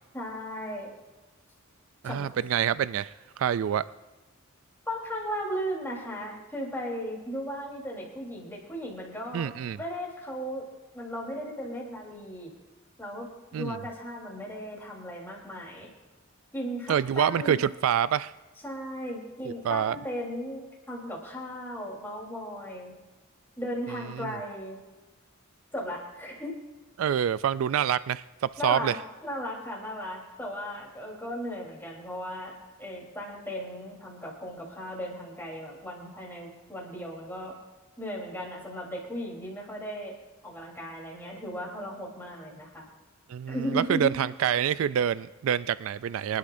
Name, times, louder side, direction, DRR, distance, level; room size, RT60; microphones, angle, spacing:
voice 1, 0.1-0.9 2.0-2.3 4.9-10.7 10.9-12.5 13.0-15.9 16.5-17.6 18.6-22.9 23.6-24.8 25.7-26.6 28.6-29.0 29.2-37.6 38.0-40.1 40.4-42.9 43.5-44.1, equal, 10° left, -3 dB, 3.6 m, -36 dB
voice 2, 2.0-3.8 9.3-9.8 13.5-13.8 16.9-18.3 19.6-20.0 24.1-24.3 27.0-28.9 43.3-46.4, right 9 dB, 70° right, 16 dB, 0.3 m, -26 dB
25.5 x 11.5 x 2.6 m, 1.2 s
head